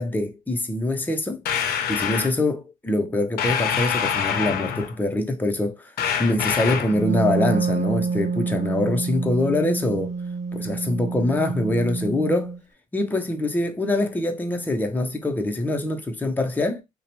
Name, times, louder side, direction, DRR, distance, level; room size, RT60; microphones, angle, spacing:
voice 1, 0.0-1.4 1.9-5.9 6.2-10.1 10.5-12.6 12.9-16.8, left 2 dB, 10° left, 0.6 m, -24 dB
sound 1, 1.4-2.3 3.4-5.0 6.0-7.0, left 8 dB, 70° left, 0.6 m, -25 dB
Wind instrument woodwind instrument, 6.9-12.6, right 4 dB, 50° right, 0.7 m, -27 dB
2.7 x 2.1 x 2.8 m
supercardioid pair, 65°, 16 cm